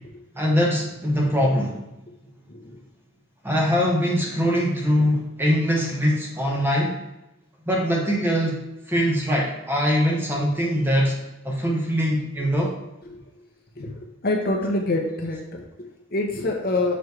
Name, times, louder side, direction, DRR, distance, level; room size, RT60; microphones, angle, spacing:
voice 1, 0.4-1.8 3.4-7.0 7.7-11.2 11.4-12.8, equal, 10° right, -2 dB, 0.8 m, -22 dB
voice 2, 14.2-17.0, left 2 dB, 45° left, 1 dB, 0.9 m, -26 dB
7.0 x 3.2 x 4.7 m, 0.99 s
head